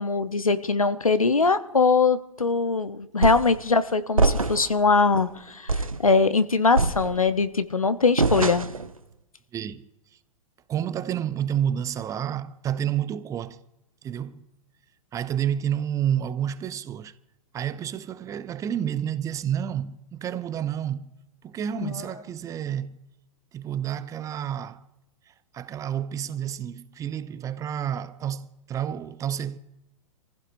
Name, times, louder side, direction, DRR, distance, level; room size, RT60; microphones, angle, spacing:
voice 1, 0.0-8.6 21.8-22.0, left 4 dB, 85° left, 0.9 m, -22 dB
sound 1, 3.2-3.6 4.2-4.8 5.2-5.3 5.7-6.0 6.8-7.4 8.2-8.9, right 3 dB, 90° right, 0.8 m, -24 dB
voice 2, 9.5-9.9 10.7-13.6 14.0-14.4 15.1-17.1 17.5-21.1 21.4-23.0 23.5-24.8 25.5-29.6, right 9 dB, 20° right, 0.6 m, -29 dB
26.5 x 15.5 x 2.7 m
figure-of-eight pair, 105°, 17 cm